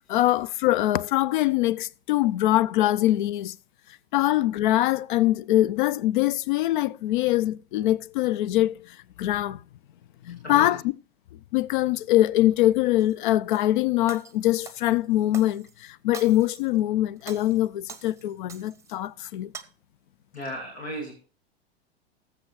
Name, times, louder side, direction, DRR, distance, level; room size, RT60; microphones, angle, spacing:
voice 1, 0.1-3.5 4.1-8.8 9.2-9.6 10.2-10.8 11.5-19.5, left 15 dB, 50° left, 0.5 m, -23 dB
voice 2, 10.4-10.8 20.3-21.1, equal, 80° left, 2.7 m, -35 dB
Shatter, 13.0-13.7 14.1-15.7 16.1-16.8 17.2-19.0 19.3-19.6, right 6 dB, 10° right, 0.8 m, -45 dB
20.0 x 7.4 x 3.1 m
figure-of-eight pair, 95°, 32 cm